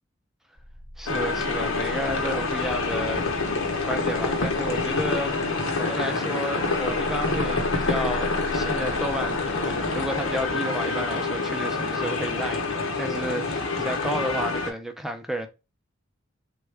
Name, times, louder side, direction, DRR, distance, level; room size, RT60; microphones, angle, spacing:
sound 1, 0.6-6.1 6.5-10.5, equal, 20° right, 0.9 m, -41 dB
voice 1, 1.0-3.2 3.6-15.5, equal, ahead, 0.4 m, -32 dB
sound 2, 1.1-14.7, left 3 dB, 85° left, 0.7 m, -27 dB
3.5 x 2.2 x 3.2 m
head